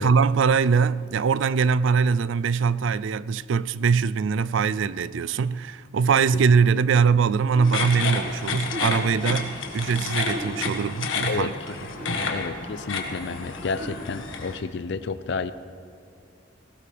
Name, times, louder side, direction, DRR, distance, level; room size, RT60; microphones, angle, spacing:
voice 1, 0.0-11.5 12.1-12.3, right 5 dB, 70° right, 0.4 m, -22 dB
sound 1, 7.4-7.8 8.5-9.0 10.1-10.6 11.6-12.3 13.4-14.1, right 1 dB, 35° right, 2.5 m, -38 dB
sound 2, 7.6-14.6, left 4 dB, 75° left, 1.6 m, -30 dB
voice 2, 11.3-11.8 12.3-15.5, left 4 dB, 60° left, 0.5 m, -31 dB
19.5 x 17.5 x 3.4 m
head